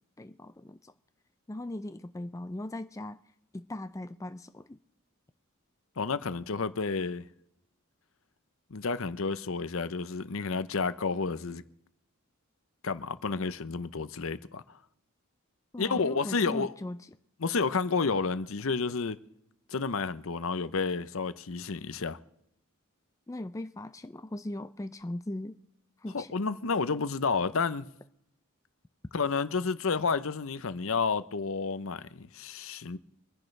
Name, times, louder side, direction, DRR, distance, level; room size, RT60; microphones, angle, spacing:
voice 1, 0.2-0.9 1.5-3.2 3.5-4.8 15.7-17.0 23.3-25.6 26.0-26.3, left 1 dB, 15° left, 0.4 m, -39 dB
voice 2, 6.0-7.2 8.7-11.6 12.8-14.6 15.8-16.7 17.4-19.2 19.7-22.2 26.1-27.9 29.1-33.0, left 4 dB, 65° left, 0.7 m, -30 dB
26.0 x 10.5 x 3.3 m
head